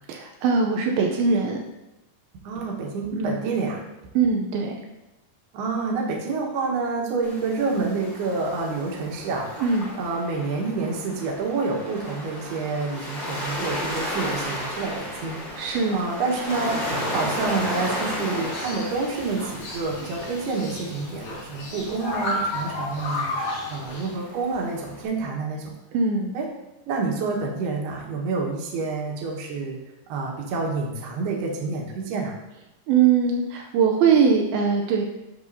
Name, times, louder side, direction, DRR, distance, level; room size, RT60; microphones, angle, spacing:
voice 1, 0.1-1.6 3.1-3.4 4.2-4.8 9.6-9.9 15.6-16.0 25.9-26.3 32.9-35.1, right 5 dB, 85° right, 2 dB, 2.1 m, -21 dB
voice 2, 2.4-3.8 5.5-9.6 10.0-15.6 15.9-23.4 23.7-25.7 26.3-26.5 26.9-29.8 30.1-32.3, right 4 dB, 70° right, 0 dB, 3.2 m, -28 dB
Waves surf, 7.2-25.1, equal, 25° left, 2.3 m, -34 dB
sound 1, 18.4-24.1, left 2 dB, 45° left, 3.3 m, -32 dB
12.0 x 7.3 x 2.8 m, 0.95 s
omnidirectional pair, 5.2 m